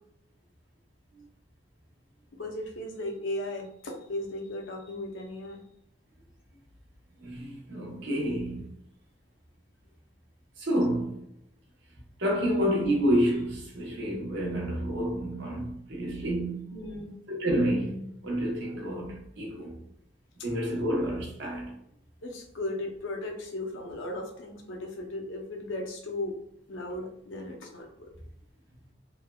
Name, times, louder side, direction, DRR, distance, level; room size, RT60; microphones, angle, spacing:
voice 1, 2.4-5.6 16.7-17.2 22.2-26.3 26.7-28.1, left 1 dB, 90° left, 0.6 m, -36 dB
voice 2, 7.2-8.7 10.6-11.2 12.2-16.7 17.3-19.8 20.4-21.7, equal, 75° right, 0.8 m, -29 dB
3.2 x 2.1 x 2.2 m
head